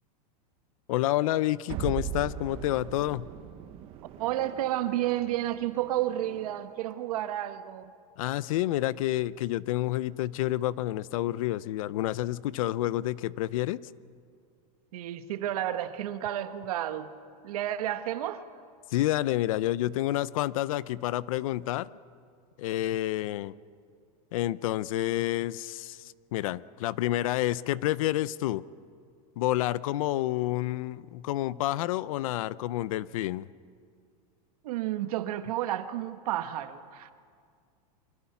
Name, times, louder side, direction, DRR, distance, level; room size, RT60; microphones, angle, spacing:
voice 1, 0.9-3.3 8.2-13.9 18.9-21.9 22.6-23.5 24.3-28.6 29.4-33.5, left 15 dB, 60° left, 19 dB, 0.6 m, -29 dB
sound 1, 1.7-6.8, right 10 dB, 30° right, 0.9 m, -40 dB
voice 2, 4.2-7.9 14.9-17.1 17.4-18.5 34.6-37.1, right 13 dB, 65° right, 10 dB, 1.3 m, -31 dB
25.0 x 24.5 x 5.9 m, 2.2 s
supercardioid pair, 170°, 20 cm